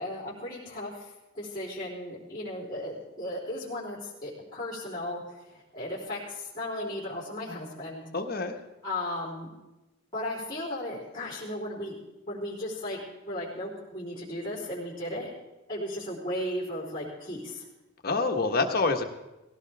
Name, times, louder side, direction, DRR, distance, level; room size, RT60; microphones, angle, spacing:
voice 1, 0.0-5.2 5.5-8.1 8.8-9.5 10.1-12.0 12.3-13.0 13.2-15.3 15.7-17.6, left 1 dB, 20° left, -6 dB, 4.0 m, -35 dB
voice 2, 8.1-8.6 18.0-19.0, left 3 dB, 45° left, 4 dB, 1.4 m, -26 dB
18.5 x 17.0 x 3.6 m, 1.0 s
head